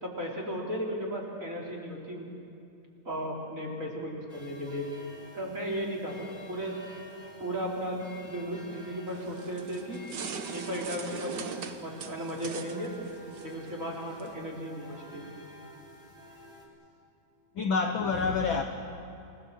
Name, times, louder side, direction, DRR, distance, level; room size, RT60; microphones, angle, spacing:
voice 1, 0.0-2.3 3.1-4.9 5.3-6.8 7.4-10.0 10.5-12.9 13.4-15.3, equal, 25° right, -2 dB, 3.7 m, -35 dB
sound 1, 4.3-16.7, left 1 dB, 20° left, 4.5 m, -50 dB
sound 2, 9.1-14.3, right 6 dB, 85° right, 0.9 m, -41 dB
voice 2, 17.5-18.6, left 4 dB, 70° left, 5 dB, 1.2 m, -27 dB
29.5 x 18.0 x 7.4 m, 2.8 s
omnidirectional pair, 3.7 m